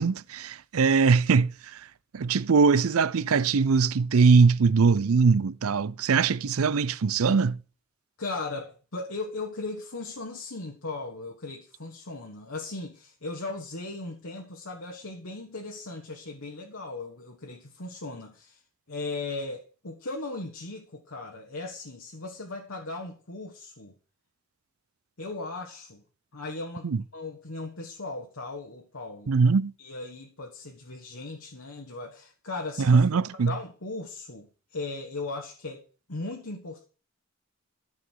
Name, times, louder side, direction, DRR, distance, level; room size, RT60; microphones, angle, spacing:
voice 1, 0.0-1.8 2.1-7.6 26.8-27.0 29.3-29.7 32.9-33.5, right 5 dB, 80° right, 0.5 m, -21 dB
voice 2, 8.2-18.6 18.9-23.9 25.2-26.0 26.3-29.4 29.8-36.9, left 3 dB, 70° left, 1.4 m, -37 dB
14.0 x 6.2 x 4.6 m
head